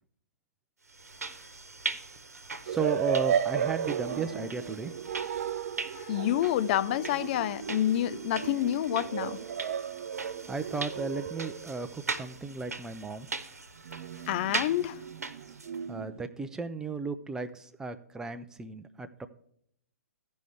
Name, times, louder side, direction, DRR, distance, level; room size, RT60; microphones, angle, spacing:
sound 1, 0.9-15.8, right 4 dB, 80° right, 1.0 m, -40 dB
voice 1, 2.6-4.9 10.5-13.3 15.9-19.3, right 4 dB, 5° right, 0.6 m, -35 dB
sound 2, 2.7-12.1 13.8-16.2, right 8 dB, 60° right, 0.5 m, -35 dB
voice 2, 5.9-9.4 14.3-15.0, left 12 dB, 40° left, 0.5 m, -28 dB
15.0 x 5.4 x 3.3 m
figure-of-eight pair, 120°, 8 cm